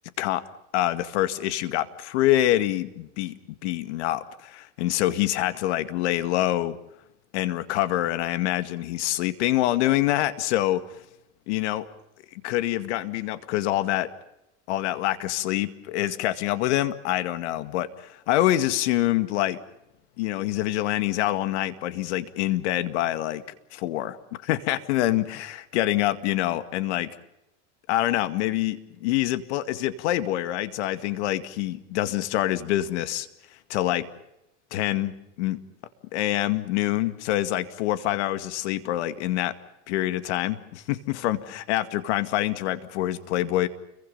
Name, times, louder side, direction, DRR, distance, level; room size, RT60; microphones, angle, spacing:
voice 1, 0.7-3.3 3.6-6.8 7.3-10.8 11.5-11.9 12.3-14.1 14.7-19.6 20.2-23.4 23.7-24.2 24.4-27.2 27.9-33.3 33.7-34.1 34.7-35.1 35.4-35.6 36.1-39.5 39.9-43.7, left 14 dB, 75° left, 12 dB, 2.1 m, -26 dB
29.5 x 23.5 x 5.5 m, 0.86 s
supercardioid pair, 130°, 35 cm